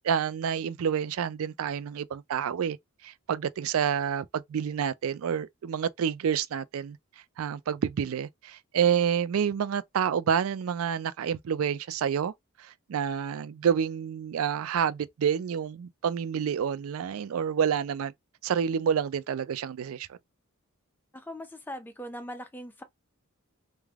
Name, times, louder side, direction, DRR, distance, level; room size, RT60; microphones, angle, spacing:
voice 1, 0.0-2.8 3.0-7.0 7.4-12.3 12.6-18.1 18.4-20.2, right 8 dB, 70° right, 0.3 m, -28 dB
voice 2, 21.1-22.8, equal, 10° left, 0.4 m, -40 dB
3.2 x 2.1 x 2.3 m
head